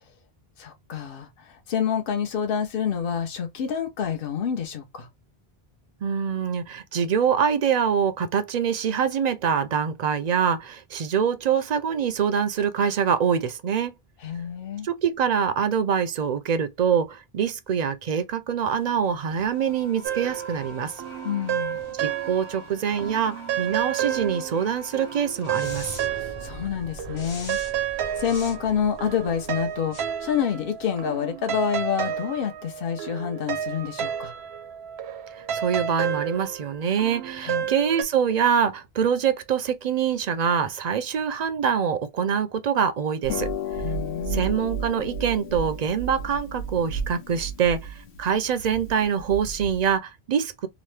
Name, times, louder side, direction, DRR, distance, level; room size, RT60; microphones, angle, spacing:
voice 1, 0.6-5.1 14.2-14.9 21.2-21.8 26.1-34.3 37.4-37.7 43.8-44.5, left 8 dB, 60° left, 0.9 m, -28 dB
voice 2, 6.0-13.9 14.8-20.9 22.0-26.0 35.3-43.5 44.3-50.7, right 7 dB, 55° right, 0.5 m, -25 dB
sound 1, 18.6-31.0, left 1 dB, 35° left, 0.5 m, -43 dB
sound 2, 20.0-22.7 23.0-26.7 27.0-38.0, right 10 dB, 80° right, 0.8 m, -31 dB
Harp, 43.2-50.0, right 1 dB, 85° left, 1.0 m, -33 dB
2.9 x 2.1 x 3.2 m
omnidirectional pair, 1.1 m